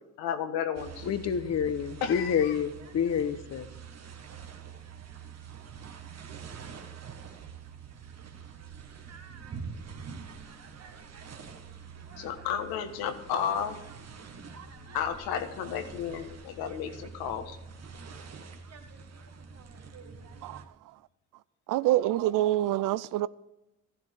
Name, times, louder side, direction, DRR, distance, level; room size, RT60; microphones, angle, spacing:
voice 1, 0.2-1.1 2.0-2.5 12.2-13.8 14.9-17.6, left 8 dB, 75° left, 1.6 m, -32 dB
sound 1, 0.7-20.7, right 6 dB, 45° right, 1.7 m, -45 dB
voice 2, 1.0-3.7, left 8 dB, 45° left, 1.1 m, -28 dB
voice 3, 21.7-23.3, right 14 dB, 60° right, 0.6 m, -26 dB
14.0 x 11.0 x 3.7 m
hypercardioid pair, 70°, 37 cm